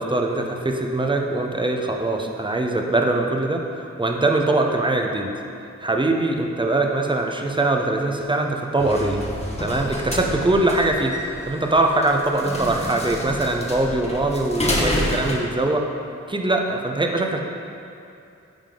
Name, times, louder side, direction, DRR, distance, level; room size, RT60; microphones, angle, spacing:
voice 1, 0.0-5.3 5.8-9.2 9.6-11.2 11.5-15.9 16.3-17.4, right 2 dB, 15° right, 2 dB, 0.7 m, -22 dB
sound 1, 8.8-15.4, left 1 dB, 20° left, 1.1 m, -28 dB
10.0 x 3.6 x 3.8 m, 2.6 s
cardioid pair, 50°, 29 cm